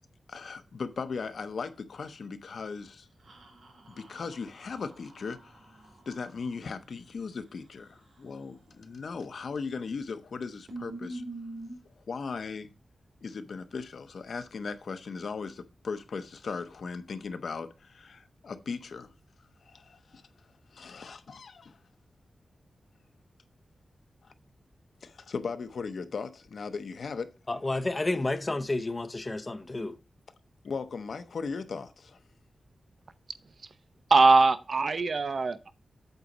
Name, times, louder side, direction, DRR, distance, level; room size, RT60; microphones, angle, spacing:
voice 1, 0.3-3.1 3.9-5.8 6.1-11.2 12.1-12.7 13.2-19.1 19.6-20.2 20.7-21.8 25.0-27.3 30.6-32.2, left 5 dB, 65° left, 0.7 m, -38 dB
sound 1, 3.2-6.6 9.4-9.8 10.2-10.3 10.7-11.7, right 2 dB, 80° right, 3.6 m, -45 dB
voice 2, 27.5-30.0, left 2 dB, 25° left, 0.7 m, -30 dB
voice 3, 34.1-35.7, right 3 dB, 50° right, 0.6 m, -21 dB
8.1 x 4.0 x 6.0 m
wide cardioid pair, 150°, 0 cm